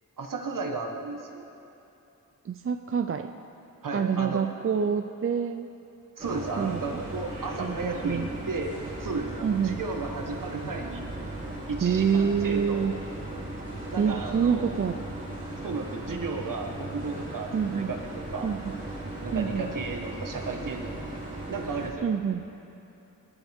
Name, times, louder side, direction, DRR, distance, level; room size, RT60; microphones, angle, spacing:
voice 1, 0.2-1.4 3.8-4.4 6.2-8.7 9.0-11.0 11.7-12.9 13.9-14.8 15.6-18.0 18.3-18.5 19.2-21.0 21.5-22.1, right 3 dB, 70° right, 3 dB, 1.5 m, -34 dB
voice 2, 2.4-3.3 3.9-5.7 6.6-7.0 7.6-8.3 9.4-9.8 11.8-12.9 14.0-15.0 17.5-17.9 18.4-18.8 19.3-19.7 22.0-22.4, right 7 dB, 40° right, 6 dB, 0.5 m, -27 dB
sound 1, 6.2-21.9, right 1 dB, 25° right, 3.5 m, -37 dB
28.5 x 11.5 x 3.6 m, 2.9 s
wide cardioid pair, 150°, 33 cm